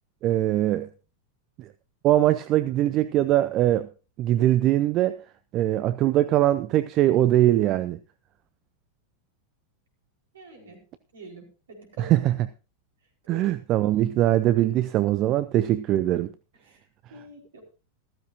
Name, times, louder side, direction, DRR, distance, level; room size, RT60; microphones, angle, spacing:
voice 1, 0.2-0.9 1.6-1.7 2.0-3.9 4.2-5.2 5.5-8.0 12.0-12.3 13.3-16.3, right 13 dB, 35° right, 0.6 m, -22 dB
voice 2, 10.3-10.8 11.1-12.2 13.3-13.5 14.0-14.2 16.6-17.6, right 2 dB, 65° right, 4.7 m, -46 dB
14.5 x 13.5 x 2.7 m
figure-of-eight pair, 90°, 0 cm